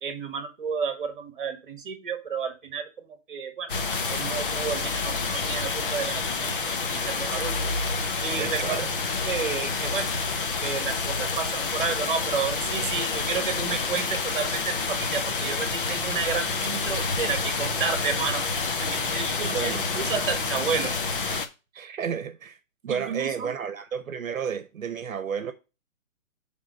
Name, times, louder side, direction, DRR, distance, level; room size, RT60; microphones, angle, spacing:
voice 1, 0.0-3.7 4.1-7.6 8.2-8.9 9.2-10.1 10.6-18.5 18.8-21.0 22.9-23.5, right 6 dB, 40° right, 1.6 m, -31 dB
sound 1, 3.7-21.5, left 4 dB, 40° left, 0.8 m, -28 dB
voice 2, 8.4-8.9 19.5-19.8 21.7-22.6 22.8-25.5, right 7 dB, 70° right, 1.0 m, -31 dB
9.1 x 3.7 x 5.3 m
hypercardioid pair, 175°, 41 cm